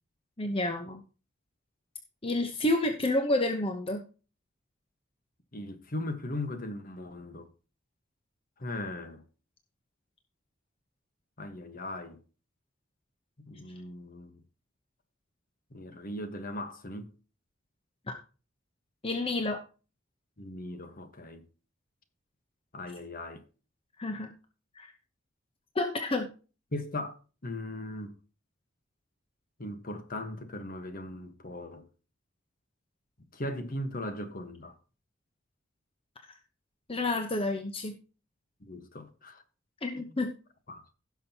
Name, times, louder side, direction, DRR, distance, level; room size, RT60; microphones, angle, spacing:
voice 1, 0.4-1.0 2.2-4.0 18.1-18.2 19.0-19.6 24.0-24.3 24.8-24.9 25.7-26.3 36.9-38.0 39.8-40.3, left 2 dB, 30° left, 1.0 m, -29 dB
voice 2, 5.5-7.5 8.6-9.2 11.4-12.2 13.4-14.4 15.7-17.1 20.4-21.4 22.7-23.4 26.7-27.2 27.4-28.1 29.6-31.8 33.3-34.8 38.6-39.4 40.7-40.9, left 1 dB, 45° left, 1.4 m, -38 dB
16.5 x 6.4 x 2.9 m
head